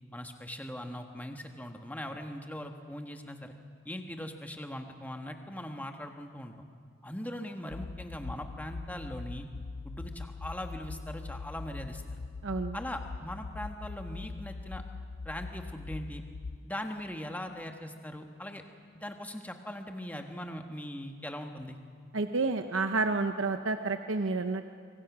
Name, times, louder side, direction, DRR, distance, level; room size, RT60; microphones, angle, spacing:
voice 1, 0.1-3.5 3.8-6.6 7.0-9.5 9.8-12.2 12.7-14.8 15.2-16.2 16.6-18.6 18.9-21.8, left 1 dB, 10° left, 4 dB, 1.4 m, -40 dB
sound 1, 7.7-16.6, left 3 dB, 65° left, 0.5 m, -42 dB
voice 2, 12.4-12.8 22.1-24.7, right 3 dB, 70° right, 7 dB, 0.8 m, -30 dB
25.0 x 24.5 x 6.1 m, 2.1 s
head